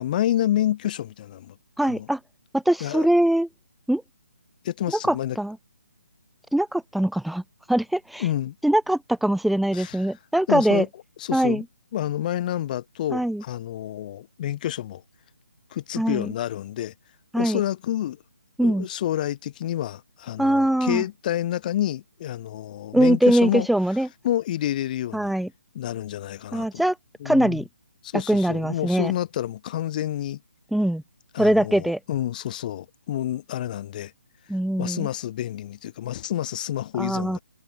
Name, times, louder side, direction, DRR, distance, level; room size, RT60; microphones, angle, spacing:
voice 1, 0.0-1.5 1.8-2.1 2.8-3.1 4.6-5.4 8.2-8.5 9.7-10.0 10.5-10.9 11.2-11.6 11.9-15.0 15.7-16.9 17.4-18.2 18.6-23.7 24.2-25.3 25.7-26.8 27.2-27.6 28.0-30.4 31.3-34.1 34.8-37.4, left 12 dB, 35° left, 6.3 m, -28 dB
voice 2, 1.8-2.2 2.5-3.5 3.9-4.0 5.0-5.6 6.5-7.4 7.7-8.3 8.6-10.8 11.3-11.6 13.1-13.4 16.0-16.3 17.3-17.6 18.6-18.9 20.4-21.0 22.9-24.1 25.1-25.5 26.5-27.0 27.2-27.6 28.3-29.1 30.7-31.0 31.4-32.0 34.5-35.1 37.0-37.4, right 1 dB, ahead, 1.0 m, -22 dB
figure-of-eight pair, 155°, 8 cm